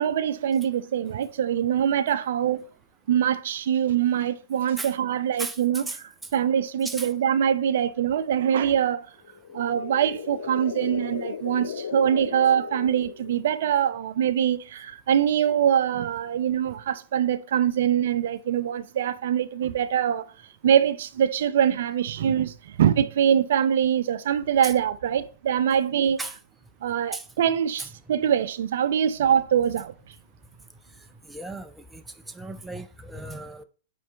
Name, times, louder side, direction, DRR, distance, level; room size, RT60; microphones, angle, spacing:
voice 1, 0.0-2.7 3.1-5.9 6.3-9.1 9.5-20.3 20.6-26.2 26.8-30.1, right 9 dB, 55° right, 0.5 m, -23 dB
voice 2, 5.4-6.0 6.8-7.1 24.6-24.7 26.2-26.4 27.1-27.2 27.8-27.9 31.3-32.0 32.3-33.6, right 2 dB, 5° right, 0.5 m, -36 dB
sound 1, 9.2-13.6, left 7 dB, 65° left, 0.4 m, -36 dB
9.3 x 3.3 x 4.3 m
figure-of-eight pair, 105°, 0 cm